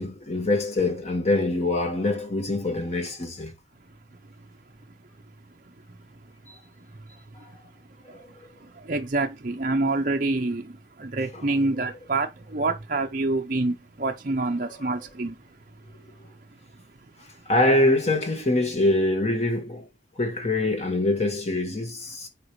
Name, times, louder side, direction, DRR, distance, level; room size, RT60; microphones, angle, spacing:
voice 1, 0.0-3.5 6.5-6.6 17.5-19.8 20.2-22.3, left 2 dB, 35° left, 1.6 m, -24 dB
voice 2, 7.4-7.7 8.1-8.2 8.6-15.6 16.1-16.2 16.7-16.9, right 2 dB, 45° right, 0.7 m, -27 dB
7.9 x 4.8 x 3.2 m
head